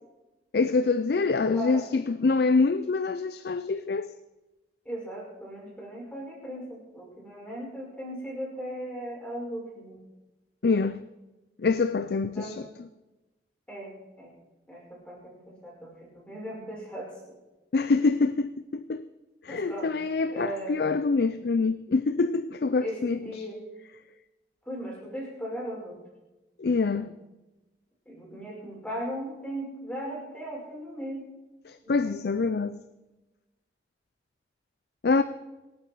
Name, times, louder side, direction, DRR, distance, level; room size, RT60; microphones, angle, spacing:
voice 1, 0.5-4.1 10.6-11.0 11.6-12.7 17.7-19.0 19.4-23.2 26.6-27.1 31.7-32.8 35.0-35.2, left 4 dB, 60° left, 0.4 m, -25 dB
voice 2, 4.9-10.0 12.1-12.6 13.7-13.9 14.2-14.3 14.7-17.1 19.5-19.9 20.3-20.8 22.8-23.6 24.7-26.0 26.9-27.1 28.1-31.2 31.8-32.5, equal, 5° left, 5.6 m, -38 dB
26.0 x 8.8 x 4.6 m
head